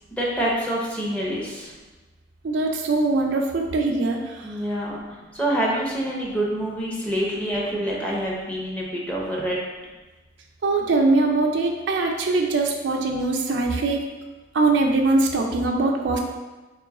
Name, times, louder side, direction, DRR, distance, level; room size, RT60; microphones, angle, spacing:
voice 1, 0.1-1.7 4.4-5.0 5.3-9.6, right 1 dB, 10° left, -4 dB, 0.7 m, -26 dB
voice 2, 2.4-4.5 10.6-14.0 14.5-16.2, right 3 dB, 70° right, 2 dB, 0.4 m, -22 dB
3.0 x 3.0 x 3.6 m, 1.2 s
head